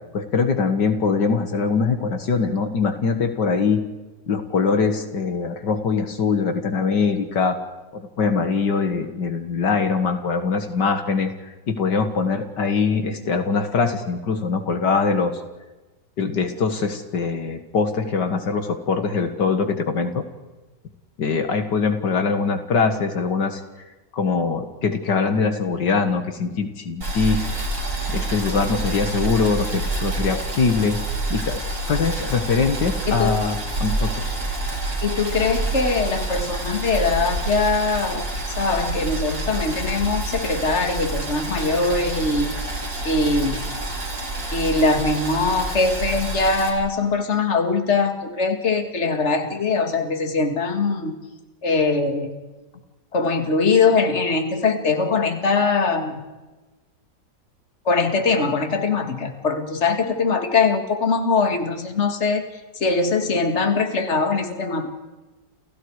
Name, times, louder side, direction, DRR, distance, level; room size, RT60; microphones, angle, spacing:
voice 1, 0.1-3.8 4.3-7.6 7.9-15.4 16.2-20.2 21.2-23.6 24.1-27.7 28.1-31.0 31.3-31.6 31.9-34.3, left 5 dB, 75° left, 7 dB, 2.3 m, -22 dB
Boiling, 27.0-46.7, right 2 dB, 85° right, 5.7 m, -27 dB
voice 2, 33.1-33.4 35.0-38.3 38.6-42.5 43.0-43.6 44.5-51.2 51.6-52.3 53.1-56.2 57.9-62.4 62.8-65.0, left 4 dB, 40° left, 6 dB, 2.5 m, -22 dB
30.0 x 29.0 x 4.9 m, 1.2 s
omnidirectional pair, 1.9 m